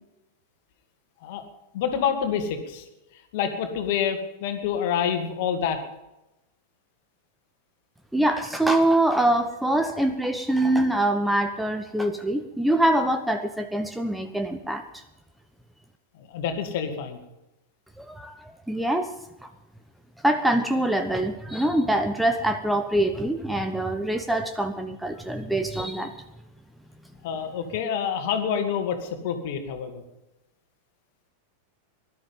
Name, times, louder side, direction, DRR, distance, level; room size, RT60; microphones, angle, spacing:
voice 1, 1.7-2.8 3.3-5.8 16.3-17.2 27.2-30.0, left 7 dB, 50° left, 7 dB, 2.3 m, -27 dB
voice 2, 8.1-15.0 18.0-18.4 18.7-19.1 19.4-19.5 20.2-26.1, right 1 dB, 5° right, 7 dB, 1.1 m, -24 dB
19.0 x 12.0 x 5.6 m, 0.95 s
figure-of-eight pair, 90°, 0 cm